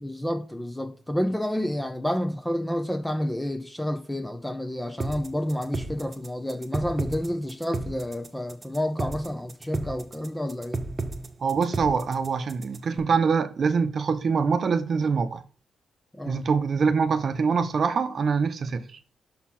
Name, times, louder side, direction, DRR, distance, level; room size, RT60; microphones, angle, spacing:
voice 1, 0.0-10.8 16.1-16.4, equal, 10° left, 0.8 m, -29 dB
sound 1, 5.0-13.0, right 3 dB, 40° right, 1.1 m, -33 dB
voice 2, 11.4-15.4 16.3-18.8, right 5 dB, 55° right, 0.8 m, -24 dB
5.9 x 4.2 x 5.8 m
supercardioid pair, 60°, 0 cm